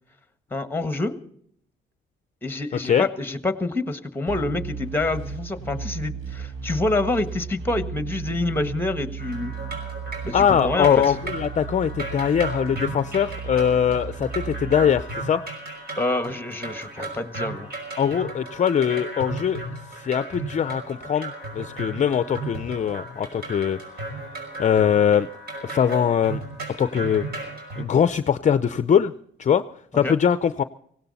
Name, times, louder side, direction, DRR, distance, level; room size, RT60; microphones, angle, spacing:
voice 1, 0.5-1.2 2.4-9.5 10.2-11.0 16.0-17.7 30.0-30.2, left 2 dB, 10° left, 10 dB, 1.5 m, -27 dB
sound 1, 4.3-14.9, right 6 dB, 85° right, 5.2 m, -35 dB
sound 2, 9.2-27.9, right 2 dB, 55° right, 5.9 m, -35 dB
voice 2, 10.3-15.4 18.0-19.6 19.9-23.8 24.6-25.3 25.6-26.4 26.8-27.3 27.8-29.1 29.4-29.6 29.9-30.6, left 8 dB, 40° left, 13 dB, 0.6 m, -22 dB
17.5 x 17.0 x 4.1 m, 0.67 s
cardioid pair, 90°, 20 cm